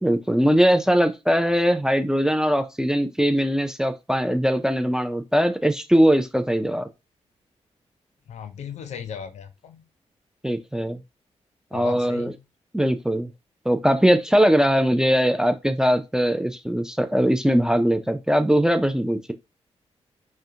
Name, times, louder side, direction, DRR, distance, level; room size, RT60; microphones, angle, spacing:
voice 1, 0.0-6.9 10.4-11.0 11.7-12.3 12.7-13.3 13.7-19.3, equal, 5° right, 0.3 m, -21 dB
voice 2, 8.3-9.9 11.7-12.3, left 7 dB, 75° left, 0.4 m, -37 dB
2.4 x 2.1 x 2.7 m
cardioid pair, 90°, 12 cm